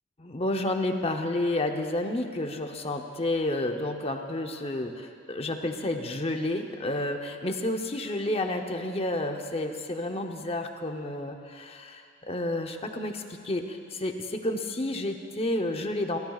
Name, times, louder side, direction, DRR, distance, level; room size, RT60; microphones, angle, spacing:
voice 1, 0.2-16.2, left 1 dB, 30° left, 4 dB, 0.8 m, -30 dB
29.0 x 13.5 x 2.4 m, 2.3 s
head